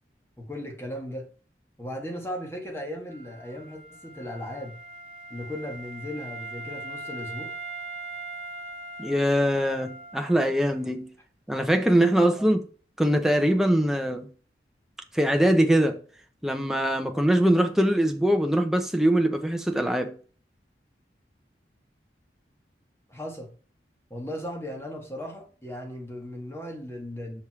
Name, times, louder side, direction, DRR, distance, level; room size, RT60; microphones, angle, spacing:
voice 1, 0.4-1.3 1.8-4.8 5.3-7.5 23.1-23.5 24.1-27.4, left 1 dB, 15° left, 1.5 m, -36 dB
Wind instrument woodwind instrument, 3.1-10.8, right 2 dB, 35° right, 1.1 m, -41 dB
voice 2, 9.0-11.1 11.5-12.6 13.0-14.3 15.1-16.0 16.4-20.2, right 1 dB, ahead, 0.7 m, -22 dB
6.1 x 5.3 x 4.7 m
head